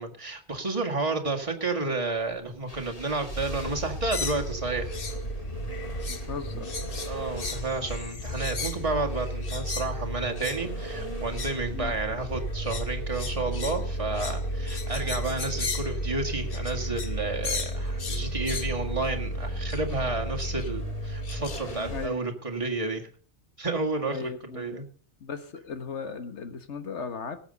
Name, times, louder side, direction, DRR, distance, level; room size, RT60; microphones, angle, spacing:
voice 1, 0.0-5.0 7.0-23.1 23.6-24.9, right 3 dB, 30° right, 1 dB, 2.0 m, -31 dB
sound 1, 2.2-4.8 6.0-20.0, right 1 dB, 10° left, 1.3 m, -44 dB
sound 2, 2.7-22.1, equal, 30° left, 2.2 m, -34 dB
sound 3, 4.1-5.2 5.5-6.3 6.6-9.9 10.4-10.6 11.2-11.6 12.2-17.2 17.4-18.8 19.7-20.0 20.4-20.7 21.2-21.8, left 5 dB, 55° left, 1.3 m, -37 dB
voice 2, 6.1-6.8 11.7-11.9 21.9-22.2 24.1-24.8 25.2-27.4, left 5 dB, 80° left, 9 dB, 1.6 m, -37 dB
18.5 x 7.8 x 5.3 m, 0.42 s
omnidirectional pair, 1.2 m